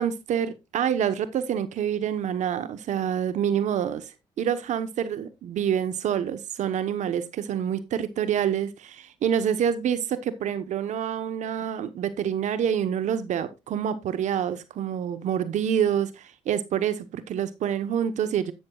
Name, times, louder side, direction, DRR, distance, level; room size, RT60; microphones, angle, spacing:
voice 1, 0.0-4.1 4.4-18.5, right 9 dB, 70° right, 1.0 m, -27 dB
11.5 x 10.5 x 2.3 m
supercardioid pair, 70°, 13 cm